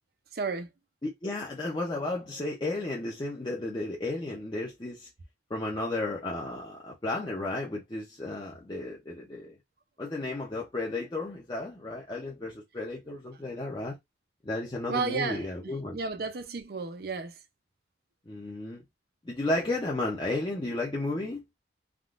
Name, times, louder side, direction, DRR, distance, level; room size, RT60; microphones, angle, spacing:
voice 1, 0.3-0.7 14.9-17.3, right 4 dB, 55° right, 0.5 m, -33 dB
voice 2, 1.0-5.1 5.5-9.5 10.0-14.0 14.4-16.0 18.3-18.8 19.3-21.4, left 2 dB, 25° left, 0.6 m, -33 dB
3.6 x 2.3 x 2.4 m
head